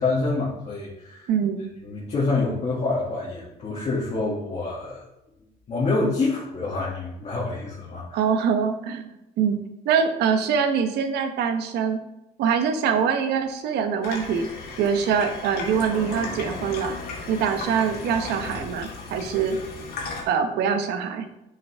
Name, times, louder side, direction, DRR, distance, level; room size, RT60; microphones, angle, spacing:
voice 1, 0.0-1.3 1.8-5.0 5.7-8.3, left 3 dB, 40° left, -7 dB, 2.6 m, -27 dB
voice 2, 1.3-1.7 8.1-9.1 9.4-9.6 9.8-12.0 12.4-14.5 14.8-16.9 17.3-19.6 20.3-21.3, right 7 dB, 80° right, 7 dB, 1.1 m, -24 dB
Water tap faucet / Sink (filling or washing), 14.0-20.2, left 3 dB, 65° left, 2.7 m, -35 dB
9.1 x 6.2 x 3.6 m, 0.90 s
cardioid pair, 110°, 17 cm